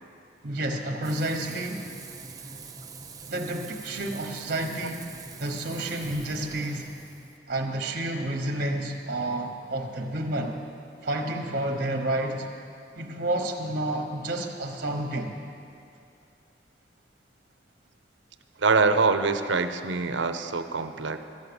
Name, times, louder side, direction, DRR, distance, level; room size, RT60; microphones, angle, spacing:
voice 1, 0.4-1.9 3.3-5.0 5.4-6.9 7.5-10.6 11.0-12.5 12.9-15.3, right 1 dB, 50° right, 3 dB, 1.1 m, -30 dB
Frying (food), 1.0-7.4, right 4 dB, 20° right, 0.6 m, -44 dB
voice 2, 18.6-21.2, right 4 dB, 80° right, 9 dB, 0.7 m, -24 dB
13.5 x 9.6 x 7.0 m, 2.5 s
head